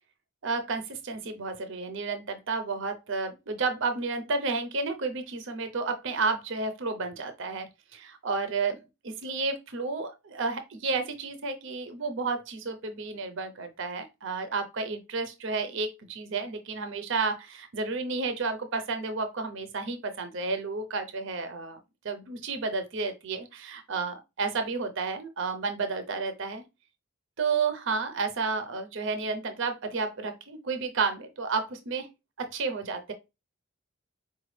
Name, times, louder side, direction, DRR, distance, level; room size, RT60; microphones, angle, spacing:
voice 1, 0.4-8.8 9.0-21.8 22.0-26.6 27.4-32.1 32.4-33.1, right 4 dB, 55° right, 0.6 m, -31 dB
5.0 x 2.3 x 3.2 m
head